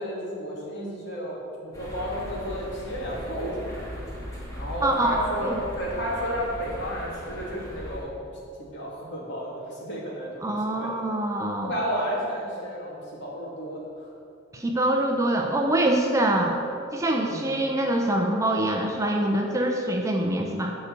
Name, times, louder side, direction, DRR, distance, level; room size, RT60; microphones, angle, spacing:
voice 1, 0.0-3.8 4.5-8.2 8.6-10.9 11.6-14.1 17.2-17.5, equal, 60° left, -4 dB, 3.1 m, -32 dB
sound 1, 1.7-8.0, equal, 15° left, 2.5 m, -38 dB
voice 2, 4.8-5.6 10.4-11.7 14.5-16.6 16.9-20.8, right 1 dB, 15° right, 1 dB, 0.8 m, -24 dB
11.0 x 5.4 x 8.3 m, 2.6 s
head